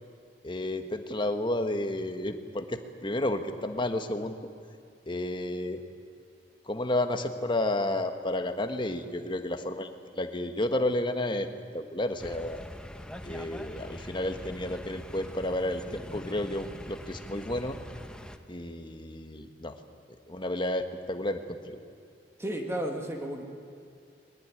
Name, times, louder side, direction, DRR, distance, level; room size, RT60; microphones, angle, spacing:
voice 1, 0.4-4.4 5.1-5.8 6.6-9.9 10.1-11.5 11.7-12.7 13.2-17.8 18.5-19.8 20.3-21.8, left 1 dB, 25° left, 7 dB, 1.6 m, -31 dB
sound 1, 12.2-18.4, equal, 5° left, 1.1 m, -43 dB
voice 2, 22.4-23.4, right 1 dB, 15° right, 2 dB, 2.0 m, -33 dB
22.0 x 19.5 x 9.8 m, 2.4 s
head